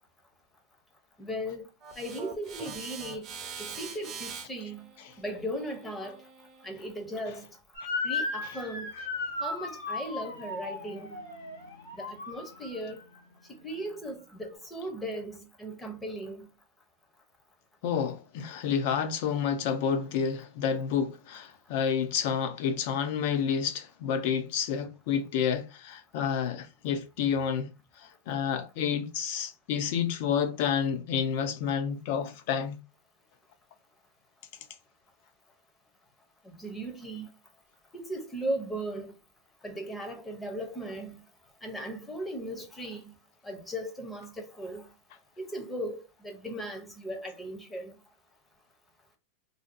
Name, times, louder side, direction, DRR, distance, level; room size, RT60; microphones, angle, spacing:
voice 1, 1.2-1.7 2.0-3.3 3.6-4.9 5.2-6.2 6.6-7.6 8.0-8.9 9.4-11.2 11.9-13.0 13.6-16.5 36.4-37.3 37.9-39.1 39.6-41.2 41.6-43.1 43.4-44.9 45.4-48.0, right 1 dB, 10° left, 0.6 m, -37 dB
sound 1, 1.8-7.0, right 6 dB, 30° right, 0.5 m, -44 dB
Motor vehicle (road) / Siren, 7.7-13.0, left 3 dB, 75° left, 1.2 m, -36 dB
voice 2, 17.8-27.7 28.0-32.8, left 7 dB, 55° left, 0.5 m, -29 dB
2.5 x 2.2 x 2.5 m
supercardioid pair, 135°, 0 cm